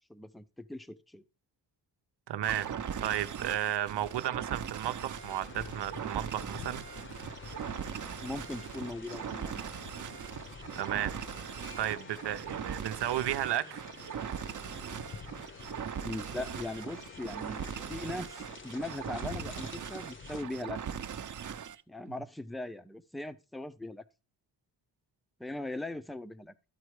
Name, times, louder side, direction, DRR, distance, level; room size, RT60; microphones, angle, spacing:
voice 1, 0.1-1.2 8.2-9.6 16.0-17.6 17.9-20.8 21.9-24.0 25.4-26.5, left 2 dB, ahead, 0.5 m, -40 dB
voice 2, 2.3-2.7 3.0-6.8 10.8-11.1 11.4-13.9, right 12 dB, 75° right, 0.8 m, -33 dB
sound 1, 2.4-21.8, right 8 dB, 45° right, 0.8 m, -40 dB
sound 2, 5.1-20.4, left 5 dB, 30° left, 0.7 m, -48 dB
13.0 x 4.5 x 4.8 m
wide cardioid pair, 150°, 42 cm